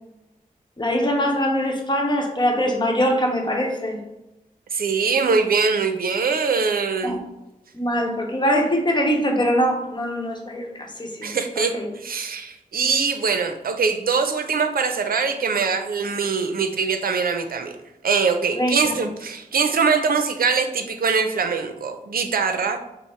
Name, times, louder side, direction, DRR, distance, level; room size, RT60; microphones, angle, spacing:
voice 1, 0.8-4.0 7.0-7.2 7.7-11.3 11.6-11.9 18.5-18.9, equal, 30° left, 1 dB, 0.9 m, -23 dB
voice 2, 4.7-7.2 11.2-17.7 18.0-22.8, right 5 dB, 80° right, 7 dB, 0.5 m, -22 dB
5.9 x 2.0 x 4.3 m, 0.95 s
wide cardioid pair, 85°, 15 cm